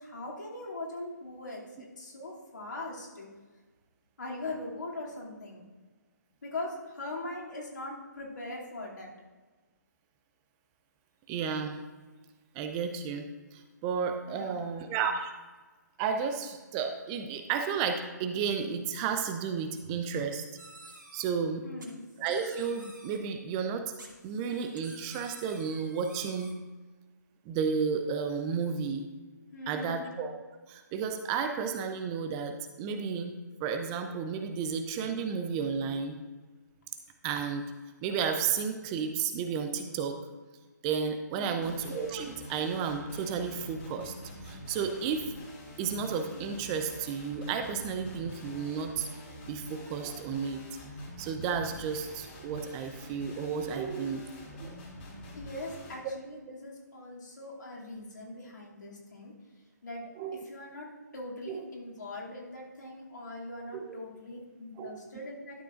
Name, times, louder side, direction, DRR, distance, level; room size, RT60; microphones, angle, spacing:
voice 1, 0.0-3.3 4.2-5.6 6.4-9.1 14.3-14.6 21.6-22.0 29.5-30.1 41.3-41.8 55.3-59.3 59.8-60.0 60.3-65.6, left 2 dB, 75° left, -4 dB, 2.6 m, -41 dB
voice 2, 11.3-11.8 12.5-13.3 13.5-15.3 16.0-20.4 21.1-21.6 22.2-23.9 24.2-26.5 27.5-29.1 29.7-30.4 30.7-33.3 33.6-36.1 37.2-37.6 38.0-40.2 40.8-44.1 44.4-45.2 45.8-50.6 51.2-54.2 54.5-54.8 60.2-60.4 61.5-61.6 63.7-63.9 64.8-65.0, right 6 dB, 20° right, 6 dB, 0.5 m, -32 dB
sound 1, 20.6-21.3 21.8-23.2 24.0-26.5, right 2 dB, 90° right, 2.1 m, -51 dB
sound 2, 41.6-55.9, left 1 dB, 40° left, 2.4 m, -46 dB
12.0 x 6.7 x 2.5 m, 1.3 s
figure-of-eight pair, 145°, 10 cm